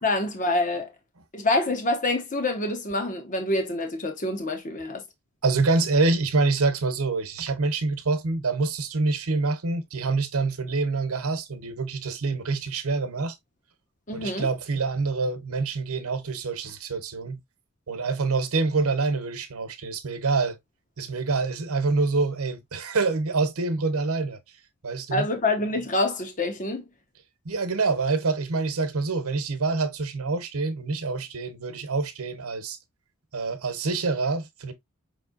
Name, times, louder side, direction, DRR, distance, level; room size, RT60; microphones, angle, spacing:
voice 1, 0.0-0.9 1.3-5.0 14.1-14.5 25.1-26.8, left 2 dB, 35° left, 1.0 m, -26 dB
voice 2, 5.4-13.3 14.1-17.4 17.9-20.6 21.0-24.4 24.8-25.3 27.4-32.8 33.3-34.7, right 3 dB, 75° right, 0.9 m, -26 dB
5.4 x 3.2 x 2.5 m
head